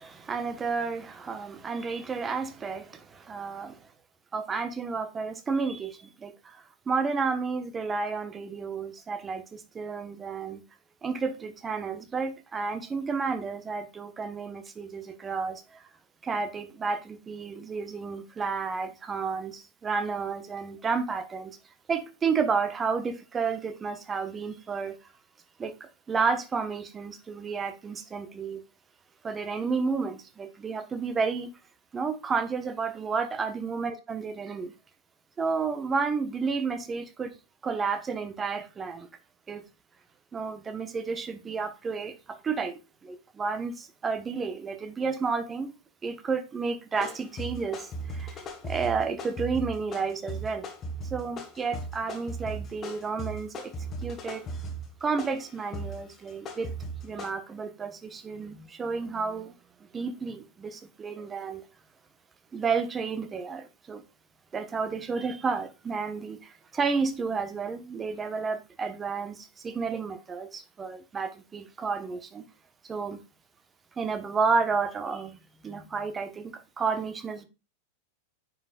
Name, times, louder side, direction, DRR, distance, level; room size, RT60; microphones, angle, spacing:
voice 1, 0.0-3.8 4.3-10.6 11.0-15.9 16.2-21.6 21.9-24.9 25.6-28.6 29.2-31.5 31.9-34.7 35.4-37.4 37.6-39.1 39.5-39.6 40.3-45.7 46.0-50.7 51.0-53.7 54.0-54.4 55.0-56.7 57.0-59.5 59.9-61.6 62.5-64.0 64.5-72.4 72.8-73.2 74.0-77.4, right 5 dB, 20° right, 1.1 m, -31 dB
sound 1, 47.0-57.3, right 2 dB, 25° left, 1.5 m, -37 dB
9.3 x 5.6 x 2.4 m
figure-of-eight pair, 90°, 0 cm